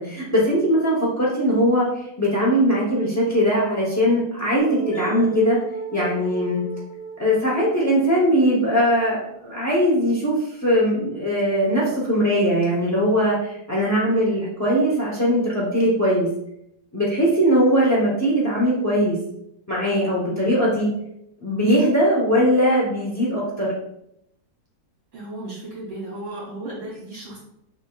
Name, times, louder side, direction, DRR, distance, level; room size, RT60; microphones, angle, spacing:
voice 1, 0.0-5.6 5.9-6.6 7.2-16.3 16.9-19.2 19.7-20.9 21.4-23.7, equal, 25° left, -5 dB, 0.3 m, -20 dB
sound 1, 4.6-8.3, right 6 dB, 60° left, 1.0 m, -33 dB
voice 2, 25.1-27.4, right 2 dB, 85° right, -5 dB, 2.7 m, -33 dB
6.2 x 3.5 x 2.3 m, 0.79 s
omnidirectional pair, 1.8 m